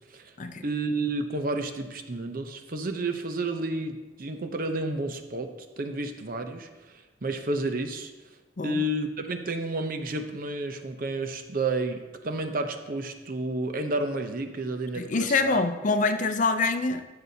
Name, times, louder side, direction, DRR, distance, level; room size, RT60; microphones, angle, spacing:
voice 1, 0.6-8.3 8.6-15.6, right 2 dB, 50° right, 6 dB, 0.7 m, -31 dB
voice 2, 15.0-17.0, left 3 dB, 45° left, 8 dB, 0.5 m, -25 dB
13.0 x 6.8 x 2.8 m, 1.2 s
head